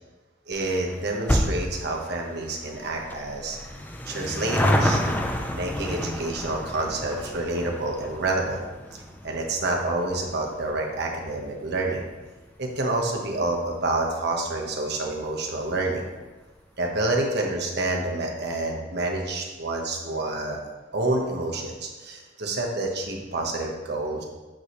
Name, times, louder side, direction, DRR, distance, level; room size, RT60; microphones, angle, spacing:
sound 1, 0.5-13.3 13.6-13.7 14.5-14.6 14.8-14.9 15.2-15.3, equal, 10° left, 0.5 m, -30 dB
voice 1, 0.5-3.6 4.1-5.0 5.5-8.6 8.9-12.0 12.6-16.1 16.8-20.6 20.9-24.2, right 2 dB, 60° right, 1 dB, 1.3 m, -28 dB
8.6 x 6.3 x 3.2 m, 1.2 s
head